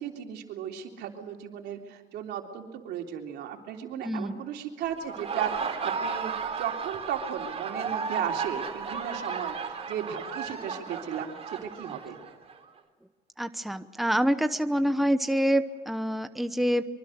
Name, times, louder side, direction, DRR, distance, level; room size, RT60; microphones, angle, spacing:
voice 1, 0.0-12.2, right 9 dB, 80° right, 3 dB, 3.5 m, -36 dB
voice 2, 4.0-4.4 13.4-16.9, equal, ahead, 10 dB, 1.0 m, -26 dB
Laughter, 5.0-12.6, right 5 dB, 35° right, 3.6 m, -34 dB
24.5 x 24.0 x 6.6 m, 1.4 s
cardioid pair, 110°, 17 cm